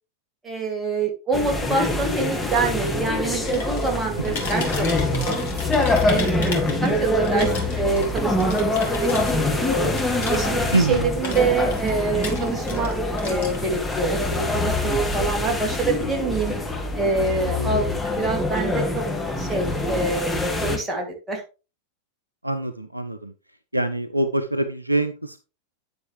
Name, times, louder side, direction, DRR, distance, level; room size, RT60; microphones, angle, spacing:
voice 1, 0.4-6.5 6.8-9.9 10.3-16.6 16.9-19.0 19.3-21.4, right 3 dB, 15° right, 1 dB, 2.5 m, -26 dB
sound 1, 1.3-20.8, left 2 dB, 5° left, 1.6 m, -25 dB
sound 2, 3.4-4.0 4.2-7.0 7.2-10.9 11.2-12.9 13.2-14.0, left 3 dB, 55° left, 2.3 m, -35 dB
voice 2, 10.7-11.1 17.6-17.7 22.4-23.3 23.7-25.4, right 2 dB, 85° right, 9 dB, 0.6 m, -24 dB
9.6 x 6.7 x 3.3 m, 0.32 s
figure-of-eight pair, 90°, 0 cm